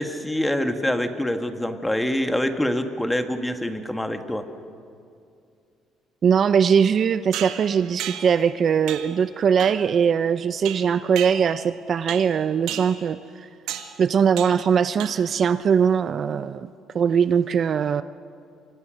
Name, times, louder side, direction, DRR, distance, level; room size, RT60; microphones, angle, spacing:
voice 1, 0.0-4.4, left 1 dB, 5° left, 6 dB, 1.7 m, -25 dB
voice 2, 6.2-13.5 14.0-16.7 16.9-18.0, right 7 dB, 40° right, 12 dB, 0.6 m, -21 dB
sound 1, 7.3-8.5 8.9-9.2 9.6-9.9 10.7-11.7 12.1-12.4 12.7-13.0 13.7-14.0 14.4-14.7 15.0-15.4, right 11 dB, 85° right, 1.9 m, -34 dB
29.0 x 25.0 x 6.5 m, 2.5 s
cardioid pair, 130°, 0 cm